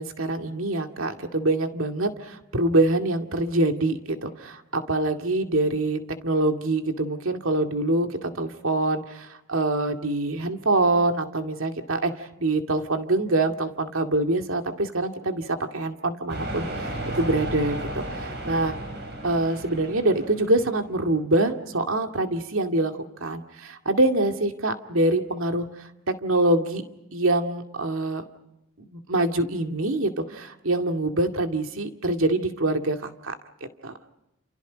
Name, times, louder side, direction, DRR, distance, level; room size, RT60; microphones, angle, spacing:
voice 1, 0.0-18.8 19.2-22.9 23.2-25.9 26.2-26.8 27.1-28.2 28.8-33.3 33.8-33.9, right 2 dB, 65° right, 5 dB, 2.3 m, -25 dB
sound 1, 16.3-20.8, right 1 dB, 50° right, 7.3 m, -33 dB
29.5 x 28.5 x 5.2 m, 0.89 s
head